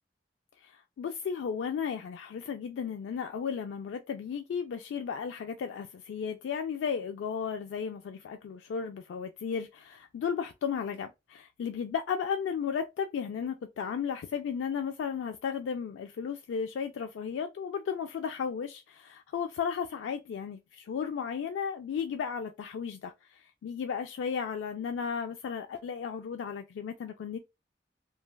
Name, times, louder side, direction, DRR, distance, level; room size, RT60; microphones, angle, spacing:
voice 1, 0.6-27.4, left 7 dB, 85° left, 0.3 m, -34 dB
3.1 x 2.2 x 2.2 m
head